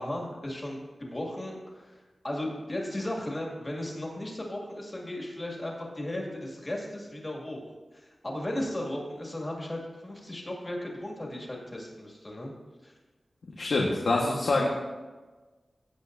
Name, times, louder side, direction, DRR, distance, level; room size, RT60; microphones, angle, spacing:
voice 1, 0.0-2.0 2.2-7.6 7.9-12.5 12.8-12.9, left 1 dB, 25° left, -1 dB, 2.2 m, -36 dB
voice 2, 13.5-14.7, left 2 dB, 80° left, -2 dB, 1.3 m, -25 dB
16.0 x 8.2 x 2.6 m, 1.3 s
wide cardioid pair, 110°, 0 cm